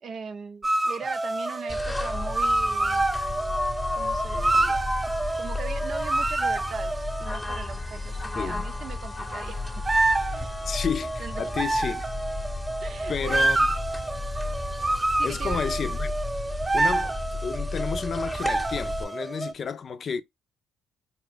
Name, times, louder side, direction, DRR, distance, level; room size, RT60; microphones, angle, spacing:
voice 1, 0.0-3.1 3.9-4.9 5.4-6.9 7.2-9.9 10.3-10.5 11.2-11.5 12.8-13.5 15.2-15.6, right 6 dB, 55° right, 0.6 m, -39 dB
sound 1, 0.6-7.6 9.9-19.5, right 2 dB, 20° right, 0.3 m, -28 dB
sound 2, 1.7-19.0, left 2 dB, 15° left, 0.9 m, -33 dB
voice 2, 10.7-12.1 13.1-13.7 15.2-16.1 16.7-17.2 17.4-20.2, left 6 dB, 50° left, 0.5 m, -31 dB
4.3 x 2.4 x 3.3 m
supercardioid pair, 65°, 0 cm